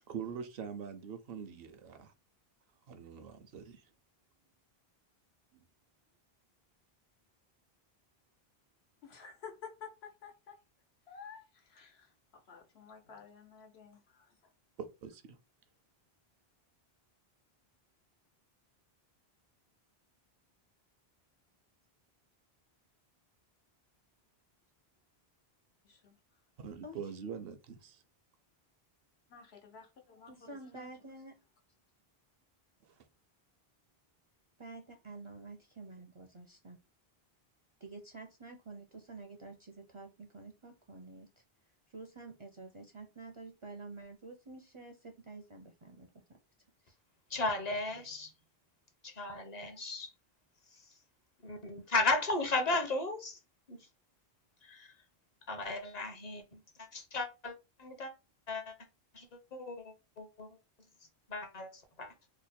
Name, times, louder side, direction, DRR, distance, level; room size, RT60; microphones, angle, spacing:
voice 1, 0.1-2.1 2.9-3.8 14.8-15.2 26.6-28.0, right 7 dB, 70° right, 0.8 m, -43 dB
voice 2, 9.0-10.6 11.1-14.5 25.8-26.1 29.3-31.0, left 6 dB, 85° left, 1.2 m, -52 dB
voice 3, 30.3-31.3 34.6-36.8 37.8-41.4 41.9-46.4 46.8-47.0, right 3 dB, 45° right, 0.4 m, -49 dB
voice 4, 47.3-48.3 49.0-50.1 51.4-53.4 53.7-53.8 54.6-54.9 55.5-58.1 58.5-58.7 59.1-60.5 61.3-62.1, left 3 dB, 45° left, 0.7 m, -35 dB
3.0 x 2.2 x 4.1 m
omnidirectional pair, 1.0 m